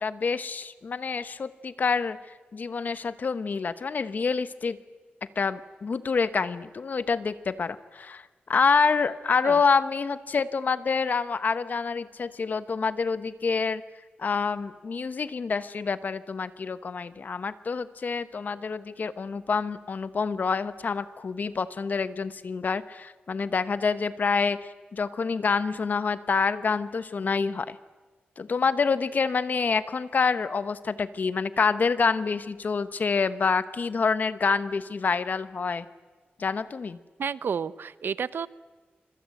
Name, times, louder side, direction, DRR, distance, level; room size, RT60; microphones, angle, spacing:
voice 1, 0.0-2.2 2.5-4.8 5.4-8.2 8.5-13.8 14.2-24.6 24.9-27.8 28.4-35.9 36.4-37.0, left 5 dB, 50° left, 13 dB, 1.1 m, -27 dB
voice 2, 37.2-38.5, right 6 dB, 70° right, 17 dB, 0.8 m, -31 dB
26.0 x 25.0 x 7.9 m, 1.3 s
wide cardioid pair, 155°, 4 cm